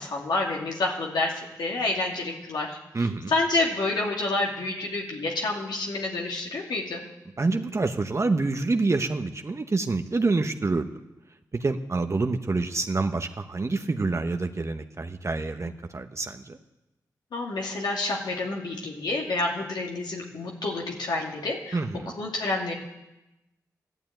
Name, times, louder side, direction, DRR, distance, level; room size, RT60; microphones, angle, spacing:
voice 1, 0.0-1.3 1.6-7.0 17.3-21.8 22.2-22.7, left 2 dB, 80° left, -2 dB, 2.5 m, -28 dB
voice 2, 2.9-3.3 7.4-10.9 11.5-16.6 21.7-22.1, right 3 dB, 40° right, 6 dB, 1.1 m, -27 dB
12.5 x 11.0 x 9.2 m, 0.96 s
cardioid pair, 45°, 7 cm